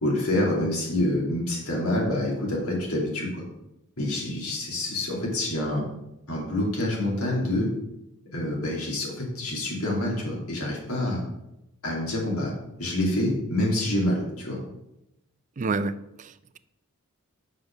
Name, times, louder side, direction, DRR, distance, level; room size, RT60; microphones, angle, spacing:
voice 1, 0.0-3.4 4.0-5.8 6.3-7.7 8.3-11.2 11.8-12.5 12.8-14.6, left 1 dB, 90° left, -3 dB, 2.8 m, -27 dB
voice 2, 15.6-16.6, right 3 dB, 35° right, 15 dB, 0.4 m, -30 dB
6.2 x 5.3 x 6.4 m, 0.89 s
head